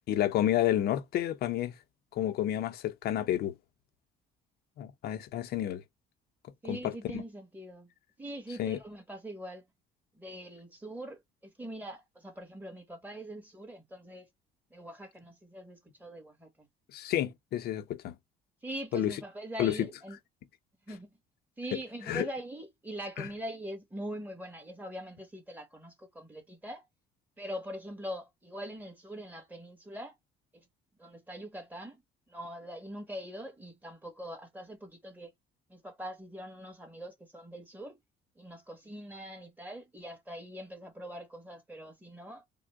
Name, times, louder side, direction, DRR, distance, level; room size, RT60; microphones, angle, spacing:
voice 1, 0.1-1.7 2.1-3.5 4.8-5.8 6.7-6.8 7.1-7.2 8.6-8.8 16.9-18.1 18.9-19.1 19.6-19.7 22.1-22.2 23.2-23.3, left 12 dB, 70° left, 0.7 m, -30 dB
voice 2, 6.6-7.9 8.2-9.6 10.1-14.3 14.7-16.7 18.6-20.2 20.9-21.2 21.6-26.8 27.4-30.2 30.5-30.7 31.0-32.0 32.3-35.3 35.7-38.0 38.3-42.4, right 1 dB, 10° right, 1.5 m, -43 dB
3.6 x 2.2 x 3.5 m
cardioid pair, 110°, 17 cm